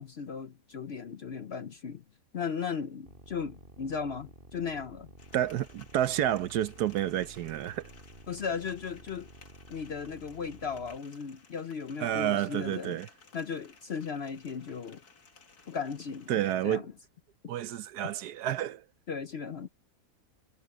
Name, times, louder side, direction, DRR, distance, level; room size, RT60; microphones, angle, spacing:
voice 1, 0.0-2.0 2.3-5.1 8.3-9.3 9.7-13.0 13.3-15.0 15.7-16.9 19.1-19.7, left 6 dB, 55° left, 0.8 m, -36 dB
sound 1, 3.0-11.0, right 1 dB, 30° right, 6.1 m, -52 dB
sound 2, 5.2-16.6, left 4 dB, 70° left, 2.8 m, -58 dB
voice 2, 5.3-7.9 12.0-13.1 16.3-16.8 17.5-18.8, right 11 dB, 75° right, 1.3 m, -30 dB
omnidirectional pair, 1.7 m